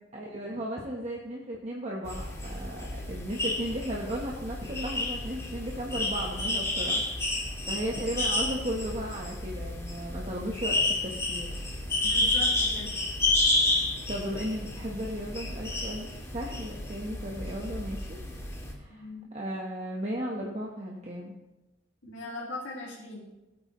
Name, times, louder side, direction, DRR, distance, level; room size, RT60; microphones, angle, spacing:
voice 1, 0.1-7.3 7.7-11.5 13.8-18.2 18.8-19.1 19.3-21.3, equal, 35° right, -2 dB, 1.2 m, -35 dB
sound 1, 2.1-18.7, left 2 dB, 15° left, 1.8 m, -31 dB
voice 2, 12.0-12.9 18.9-19.3 22.0-23.3, left 2 dB, 85° left, -6 dB, 2.4 m, -40 dB
17.5 x 8.9 x 3.1 m, 1.0 s
head